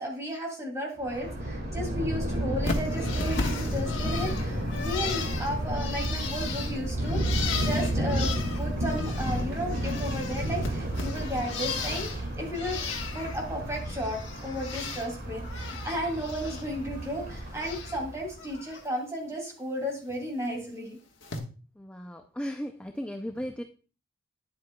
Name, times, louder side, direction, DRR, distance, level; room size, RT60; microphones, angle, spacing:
voice 1, 0.0-12.8 13.1-21.0, equal, 15° right, 0 dB, 2.6 m, -34 dB
Thunder, 1.0-18.4, right 1 dB, 50° right, 2.0 m, -32 dB
sound 1, 2.5-13.9, left 1 dB, 45° left, 2.9 m, -42 dB
Bird, 2.6-9.4 9.7-12.2 12.5-13.4 13.7-15.1 15.4-16.6 16.9-18.0 18.4-18.8 20.1-20.2 21.2-21.4, left 4 dB, 65° left, 1.4 m, -36 dB
voice 2, 21.8-23.6, equal, 5° left, 5 dB, 0.4 m, -36 dB
10.5 x 7.8 x 2.3 m, 0.36 s
head